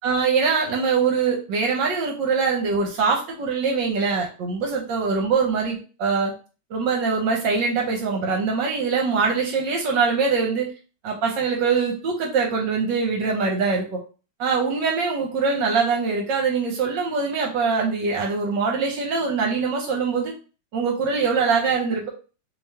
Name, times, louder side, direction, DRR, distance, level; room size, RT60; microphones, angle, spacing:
voice 1, 0.0-6.3 6.7-10.7 11.0-14.0 14.4-20.3 20.7-22.1, right 5 dB, 65° right, 0 dB, 1.3 m, -23 dB
3.4 x 3.3 x 2.8 m, 0.35 s
omnidirectional pair, 2.3 m